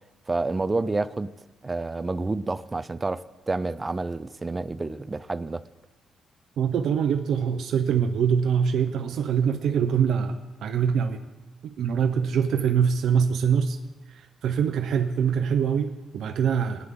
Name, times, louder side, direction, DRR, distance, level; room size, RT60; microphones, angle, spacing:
voice 1, 0.3-1.3 1.6-5.6, right 3 dB, 20° right, 0.5 m, -29 dB
voice 2, 6.6-11.2 11.6-13.8 14.1-16.9, right 7 dB, 70° right, 0.7 m, -24 dB
19.0 x 9.6 x 3.8 m
cardioid pair, 90°, 0 cm